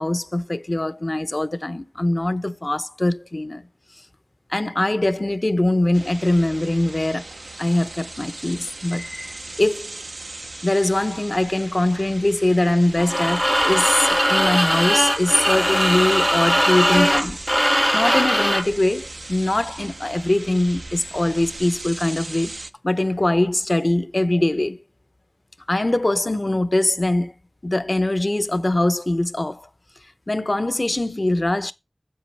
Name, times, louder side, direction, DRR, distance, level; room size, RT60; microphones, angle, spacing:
voice 1, 0.0-3.6 4.5-7.2 7.6-9.9 10.6-17.4 17.9-22.6 22.8-24.8 25.7-27.3 27.6-29.6 30.3-31.7, left 1 dB, 50° left, 0.7 m, -22 dB
sound 1, 5.9-22.7, right 2 dB, 80° right, 0.6 m, -38 dB
sound 2, 13.0-18.7, equal, 5° right, 0.4 m, -20 dB
10.5 x 7.6 x 3.3 m
wide cardioid pair, 45°, 0 cm